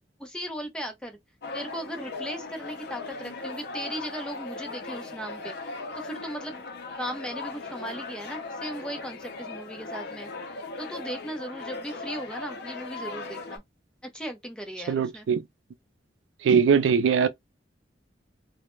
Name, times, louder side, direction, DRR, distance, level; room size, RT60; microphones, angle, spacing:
voice 1, 0.2-1.2 1.5-6.7 7.0-13.6 14.0-15.3 17.2-17.3, equal, 5° left, 0.6 m, -37 dB
sound 1, 1.4-13.6, left 3 dB, 60° left, 0.5 m, -38 dB
voice 2, 14.9-15.4 16.4-17.3, right 6 dB, 80° right, 0.3 m, -21 dB
2.1 x 2.1 x 3.0 m
head